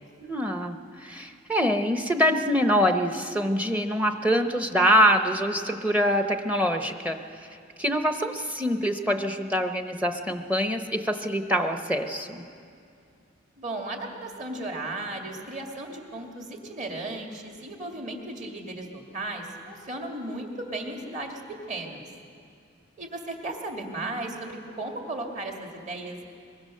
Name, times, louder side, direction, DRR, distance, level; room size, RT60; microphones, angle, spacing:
voice 1, 0.2-7.2 7.8-12.4, equal, 10° right, 6 dB, 0.8 m, -24 dB
voice 2, 13.6-21.4 21.7-22.0 23.0-26.2, right 2 dB, 40° right, 2 dB, 2.4 m, -35 dB
22.5 x 22.5 x 6.6 m, 2.4 s
head